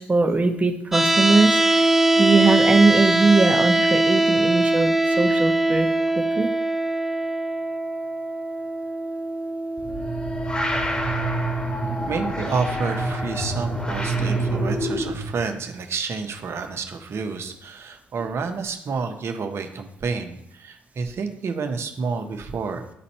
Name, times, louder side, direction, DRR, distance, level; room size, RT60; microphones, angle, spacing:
voice 1, 0.0-1.9 2.2-5.9 6.2-6.5, right 3 dB, 25° right, 5 dB, 1.2 m, -20 dB
sound 1, 0.9-12.9, right 1 dB, 5° right, 0.8 m, -22 dB
sound 2, 9.8-15.3, right 1 dB, 15° left, 1.9 m, -26 dB
voice 2, 11.8-22.8, right 5 dB, 50° right, 5 dB, 1.2 m, -29 dB
11.0 x 4.0 x 4.4 m, 0.79 s
hypercardioid pair, 45°, 6 cm